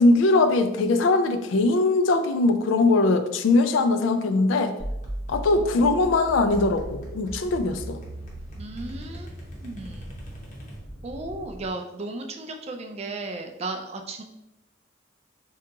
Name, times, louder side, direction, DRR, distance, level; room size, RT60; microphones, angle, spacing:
voice 1, 0.0-4.7 5.3-8.0, left 2 dB, 85° left, 9 dB, 0.3 m, -21 dB
sound 1, 4.8-11.2, right 1 dB, 40° left, 0.7 m, -38 dB
voice 2, 5.5-5.9 8.6-9.3 9.6-10.2 11.0-14.2, right 2 dB, 35° right, 5 dB, 0.3 m, -35 dB
sound 2, 6.4-11.7, equal, 5° left, 0.7 m, -43 dB
2.8 x 2.3 x 3.7 m, 0.91 s
head